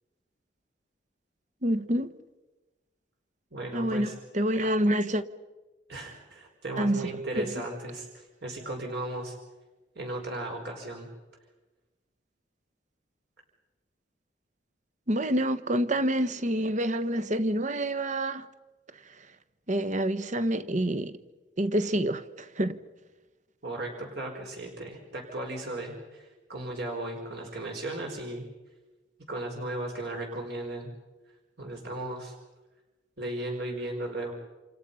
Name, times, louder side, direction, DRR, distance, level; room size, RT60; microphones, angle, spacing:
voice 1, 1.6-2.1 3.7-5.2 6.8-7.1 7.4-7.5 15.1-18.5 19.7-21.1 21.6-22.8, right 1 dB, 40° right, 1.2 m, -27 dB
voice 2, 3.5-4.1 4.6-4.7 5.9-9.3 9.9-11.1 23.6-28.5 29.3-30.9 31.6-32.4 33.2-34.3, right 2 dB, 60° right, 4.9 m, -36 dB
29.0 x 27.5 x 5.6 m
head